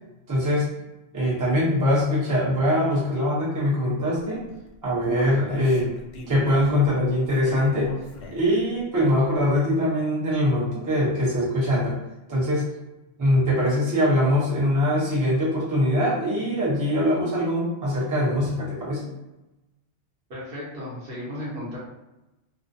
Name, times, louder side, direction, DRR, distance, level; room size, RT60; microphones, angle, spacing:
voice 1, 0.3-0.7 1.1-4.5 4.8-5.9 6.3-7.9 8.3-12.0 12.3-12.7 13.2-19.1, left 1 dB, 20° right, -7 dB, 0.5 m, -22 dB
Human voice, 4.4-8.6 9.0-9.1 9.6-9.7, left 1 dB, 65° left, 0.7 m, -36 dB
voice 2, 20.3-21.8, left 1 dB, 50° right, -7 dB, 1.0 m, -34 dB
2.4 x 2.1 x 2.5 m, 0.99 s
omnidirectional pair, 1.3 m